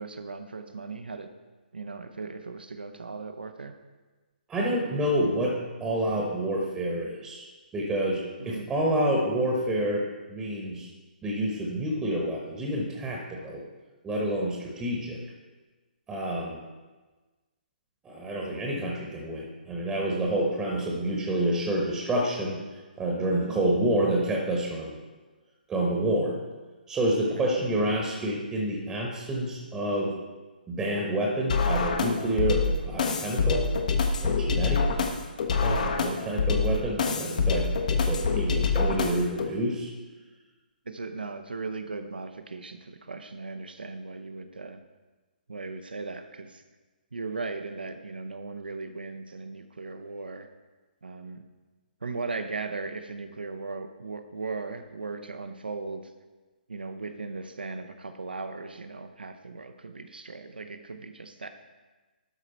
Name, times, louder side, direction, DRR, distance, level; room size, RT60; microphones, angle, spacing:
voice 1, 0.0-1.3 1.7-3.7 8.4-8.7 14.2-14.3 23.5-23.7 27.4-27.5 36.1-36.4 40.9-44.8 45.5-46.6 47.1-50.5 51.0-51.4 52.0-56.1 56.7-61.5, right 3 dB, 70° right, 8 dB, 0.7 m, -37 dB
voice 2, 4.5-7.4 7.7-10.0 10.3-10.9 11.2-13.6 14.0-15.2 16.1-16.6 18.0-22.6 23.0-25.0 25.7-26.4 26.9-30.1 30.7-33.7 34.2-34.9 35.6-39.9, right 1 dB, 10° right, -1 dB, 1.1 m, -28 dB
sound 1, 31.5-39.5, left 4 dB, 50° left, 0.9 m, -26 dB
12.0 x 5.0 x 4.2 m, 1.3 s
figure-of-eight pair, 135°, 5 cm